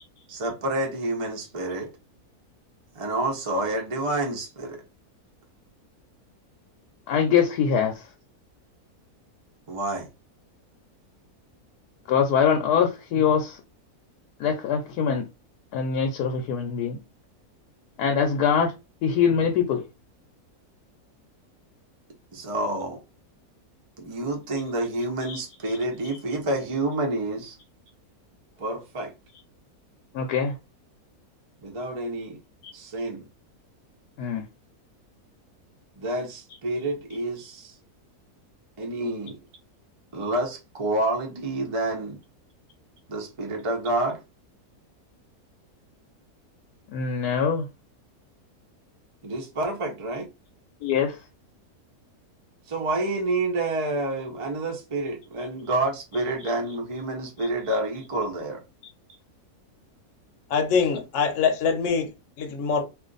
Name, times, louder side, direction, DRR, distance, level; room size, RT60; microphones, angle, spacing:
voice 1, 0.3-1.9 3.0-4.8 9.7-10.1 22.3-23.0 24.0-27.6 28.6-29.1 31.6-32.4 32.7-33.2 36.0-37.7 38.8-39.4 40.1-42.2 43.1-44.2 49.2-50.3 52.7-58.6, right 2 dB, 45° right, 0.4 m, -28 dB
voice 2, 7.1-7.9 12.1-13.6 14.4-15.2 15.7-17.0 18.0-18.7 19.0-19.8 25.3-25.4 30.1-30.5 32.6-32.7 34.2-34.5 46.9-47.7 50.8-51.2, left 7 dB, 85° left, 1.1 m, -23 dB
voice 3, 60.5-62.1 62.4-62.8, left 5 dB, 60° left, 1.0 m, -23 dB
2.5 x 2.4 x 3.8 m
omnidirectional pair, 1.6 m